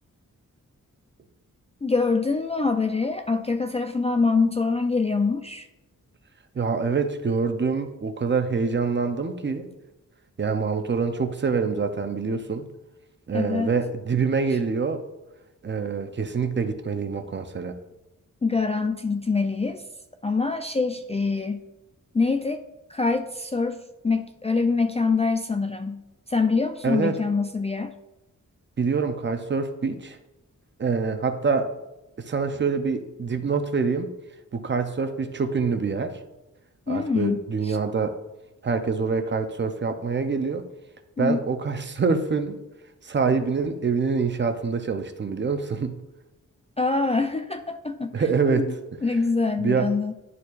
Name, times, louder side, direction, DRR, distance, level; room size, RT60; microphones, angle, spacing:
voice 1, 1.8-5.7 13.3-13.7 18.4-19.8 20.2-21.6 22.1-22.6 22.9-26.0 26.3-28.0 36.9-37.4 37.6-37.8 41.2-41.4 46.8-48.2 48.5-48.7 49.0-50.1, left 4 dB, 20° left, 5 dB, 0.3 m, -24 dB
voice 2, 6.5-9.7 10.4-12.7 13.3-15.1 15.6-17.8 26.8-27.2 28.8-30.2 30.8-31.7 32.2-34.1 34.5-36.2 36.9-38.2 38.6-40.6 41.2-42.6 43.0-46.0 48.1-48.7 49.6-49.9, right 5 dB, 35° right, 7 dB, 0.6 m, -25 dB
11.0 x 4.6 x 2.4 m, 0.98 s
wide cardioid pair, 130°, 32 cm